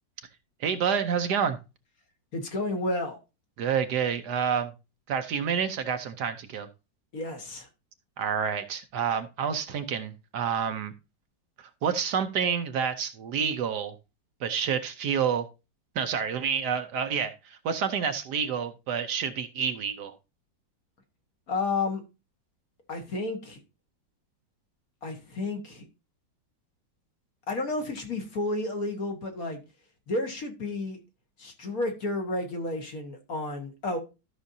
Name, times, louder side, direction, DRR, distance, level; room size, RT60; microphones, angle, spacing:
voice 1, 0.6-1.6 3.6-4.7 5.1-6.7 8.2-10.9 11.8-13.9 14.4-15.5 15.9-20.1, right 7 dB, 70° right, 1.2 m, -28 dB
voice 2, 2.3-3.2 7.1-7.7 21.5-22.0 22.9-23.6 25.0-25.8 27.5-29.6 30.1-31.0 31.4-34.0, left 2 dB, 50° left, 1.8 m, -31 dB
13.0 x 6.1 x 2.7 m
omnidirectional pair, 2.0 m